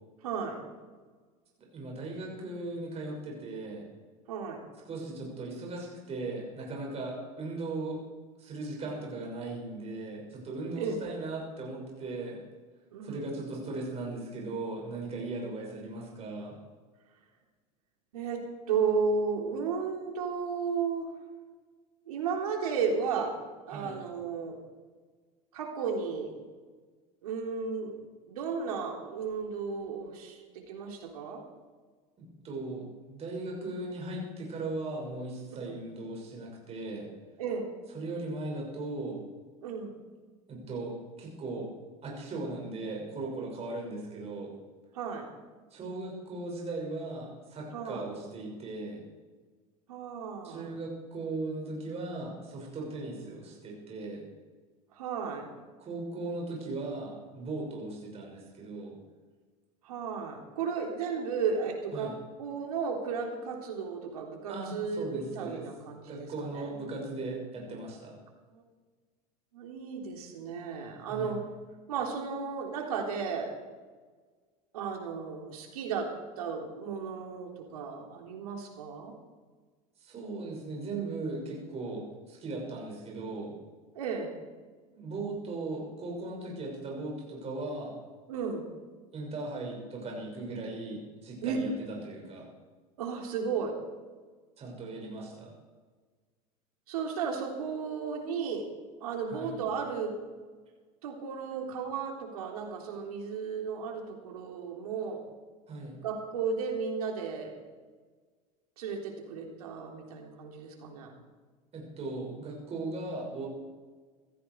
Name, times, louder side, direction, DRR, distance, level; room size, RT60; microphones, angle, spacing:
voice 1, 0.2-0.6 4.3-4.6 10.8-11.0 12.9-13.3 18.1-21.1 22.1-23.4 23.7-24.6 25.5-26.3 27.2-28.0 28.3-30.4 30.7-31.4 35.6-35.7 37.4-37.7 39.6-40.0 44.9-45.3 47.7-48.1 49.9-50.7 54.9-55.5 59.8-62.1 62.4-66.3 66.5-66.7 68.5-68.6 69.5-71.4 71.9-73.5 74.7-76.1 76.4-79.1 84.0-84.3 88.3-88.7 91.4-91.6 93.0-93.8 96.9-98.7 99.0-100.1 101.0-105.2 106.0-107.6 108.8-111.1, right 5 dB, 85° right, 2 dB, 3.5 m, -34 dB
voice 2, 1.7-3.8 4.8-8.0 8.4-12.4 13.0-16.5 23.7-24.0 32.2-37.1 37.9-39.2 40.5-41.7 42.0-44.5 45.7-49.1 50.4-54.3 55.8-58.9 61.9-62.1 64.5-65.6 66.1-68.1 71.0-71.3 80.0-83.6 84.9-87.9 89.1-92.5 94.6-95.5 99.3-99.5 105.7-106.0 111.7-113.5, right 2 dB, 35° right, -1 dB, 6.1 m, -38 dB
17.0 x 15.0 x 4.7 m, 1.4 s
hypercardioid pair, 100°, 19 cm